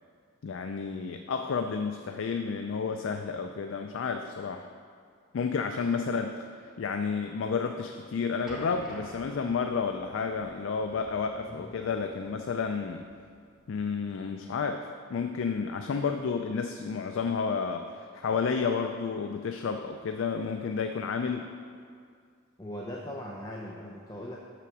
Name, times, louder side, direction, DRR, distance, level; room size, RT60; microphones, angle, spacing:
voice 1, 0.4-4.7 5.3-13.1 13.7-21.5, left 5 dB, 65° left, 6 dB, 0.4 m, -31 dB
sound 1, 8.5-13.9, equal, 5° right, 1.3 m, -49 dB
voice 2, 22.6-24.4, equal, 15° left, -2 dB, 0.6 m, -39 dB
7.0 x 5.9 x 6.0 m, 2.1 s
head